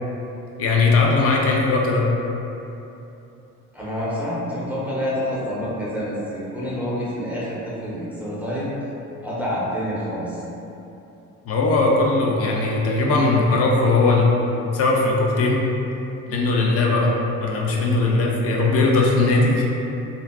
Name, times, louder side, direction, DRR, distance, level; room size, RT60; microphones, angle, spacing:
voice 1, 0.6-2.1 11.5-14.3 14.7-15.6 16.3-17.1 17.4-19.6, left 3 dB, 35° left, -2 dB, 0.5 m, -19 dB
voice 2, 3.7-8.7 9.2-10.4, equal, 5° right, -9 dB, 0.9 m, -27 dB
2.5 x 2.2 x 3.4 m, 2.9 s
figure-of-eight pair, 50°, 44 cm